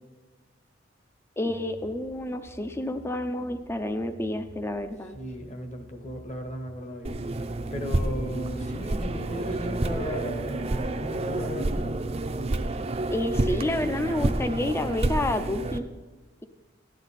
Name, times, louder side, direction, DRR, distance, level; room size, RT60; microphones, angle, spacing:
voice 1, 1.4-5.2 13.1-15.8, left 1 dB, 15° left, 9 dB, 0.5 m, -29 dB
sound 1, 1.5-6.8, equal, 80° left, 3.9 m, -50 dB
voice 2, 5.1-7.2 7.7-12.0, equal, 35° left, 5 dB, 1.2 m, -36 dB
sound 2, 7.0-15.8, right 2 dB, 35° right, 0.5 m, -29 dB
14.5 x 10.5 x 4.1 m, 1.3 s
head